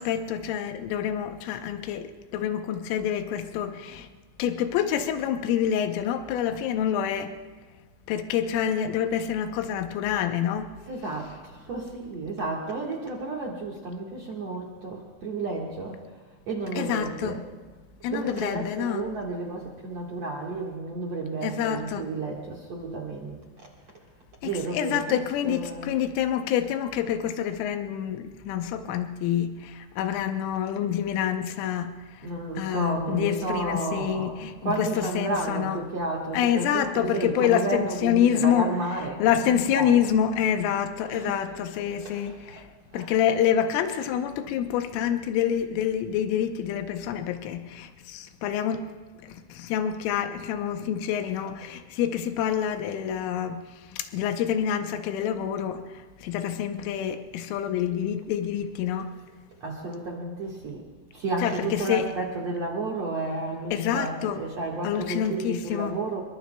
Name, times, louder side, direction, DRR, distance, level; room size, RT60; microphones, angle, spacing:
voice 1, 0.0-4.1 4.4-7.3 8.1-10.7 16.8-17.4 18.0-19.1 21.4-22.1 24.4-32.3 32.6-35.8 36.3-38.7 39.2-42.6 42.9-48.8 49.2-53.6 53.9-59.1 61.4-62.0 63.7-64.4 64.8-66.0, left 9 dB, 90° left, 7 dB, 3.5 m, -27 dB
voice 2, 10.9-16.1 16.5-17.5 18.1-23.4 24.4-26.0 32.2-40.0 41.0-42.6 42.9-43.2 59.6-66.2, right 3 dB, 65° right, -2 dB, 1.6 m, -32 dB
26.5 x 23.5 x 2.3 m, 1.3 s
omnidirectional pair, 5.7 m